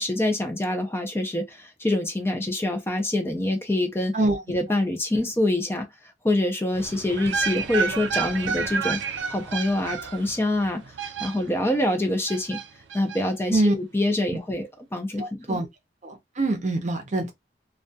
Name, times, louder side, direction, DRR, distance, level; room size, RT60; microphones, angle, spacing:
voice 1, 0.0-4.1 4.5-9.0 9.3-12.6 12.9-15.6, left 1 dB, 15° left, 0.5 m, -26 dB
sound 1, 6.7-11.8 12.3-13.2 13.5-13.6, right 5 dB, 85° right, 0.4 m, -30 dB
voice 2, 15.2-15.7 16.0-17.3, right 2 dB, 40° right, 0.6 m, -24 dB
2.3 x 2.2 x 2.6 m
head